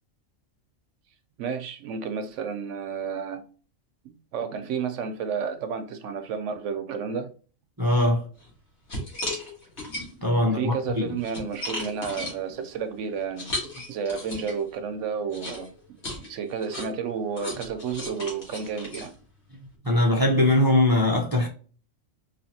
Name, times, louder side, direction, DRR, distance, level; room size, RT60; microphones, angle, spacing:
voice 1, 1.4-3.4 4.0-7.3 10.5-16.0 16.3-19.1, right 6 dB, 70° right, 0.9 m, -31 dB
voice 2, 7.8-8.2 10.2-11.0 19.8-21.5, left 1 dB, 30° right, 0.4 m, -21 dB
sound 1, 8.4-8.5 8.9-10.4 10.9-14.7 15.3-19.7, left 1 dB, 55° left, 1.8 m, -36 dB
4.2 x 2.8 x 2.7 m
omnidirectional pair, 1.4 m